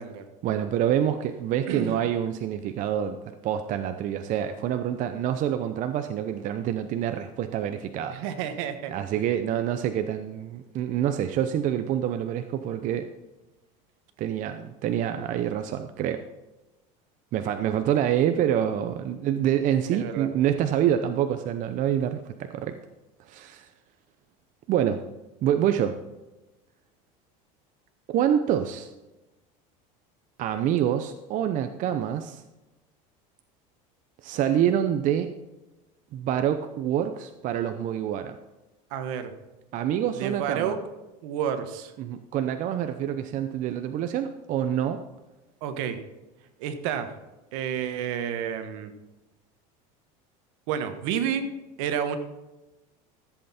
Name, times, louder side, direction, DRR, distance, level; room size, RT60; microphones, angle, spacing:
voice 1, 0.4-3.2 3.4-8.2 8.9-13.1 14.2-16.2 17.3-22.8 23.3-23.7 24.7-25.1 25.4-26.0 28.1-28.9 30.4-32.4 34.2-35.3 36.1-38.4 39.7-40.8 42.0-45.0, right 10 dB, 45° right, 8 dB, 0.7 m, -26 dB
voice 2, 1.7-2.0 8.1-9.2 19.9-20.3 38.9-39.3 40.2-40.8 41.2-41.9 45.6-46.0 46.6-47.1 47.5-48.9 50.7-51.5 51.8-52.2, right 8 dB, 75° right, 9 dB, 1.4 m, -30 dB
14.5 x 8.0 x 4.3 m, 1.1 s
supercardioid pair, 125°, 18 cm